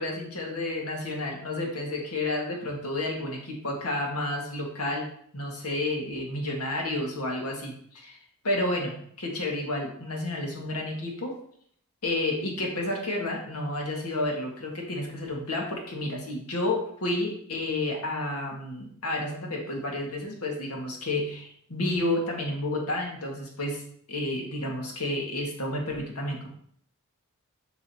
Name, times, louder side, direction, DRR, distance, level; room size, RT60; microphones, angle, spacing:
voice 1, 0.0-8.2 8.4-11.3 12.0-26.5, left 1 dB, 85° left, 0 dB, 1.7 m, -31 dB
7.2 x 5.6 x 2.9 m, 0.63 s
head